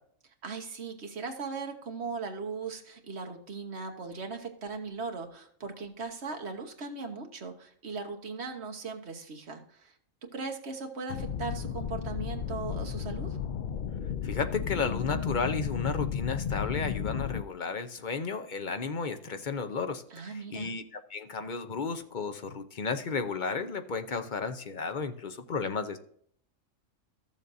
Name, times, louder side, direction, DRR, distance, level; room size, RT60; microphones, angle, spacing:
voice 1, 0.4-9.9 10.2-13.4 20.1-20.7, right 4 dB, 55° right, 4 dB, 1.4 m, -38 dB
sound 1, 11.1-17.4, left 8 dB, 85° left, 0.4 m, -33 dB
voice 2, 14.2-20.8 21.1-26.0, left 5 dB, 45° left, 8 dB, 0.8 m, -33 dB
13.5 x 7.2 x 2.6 m, 0.65 s
omnidirectional pair, 1.4 m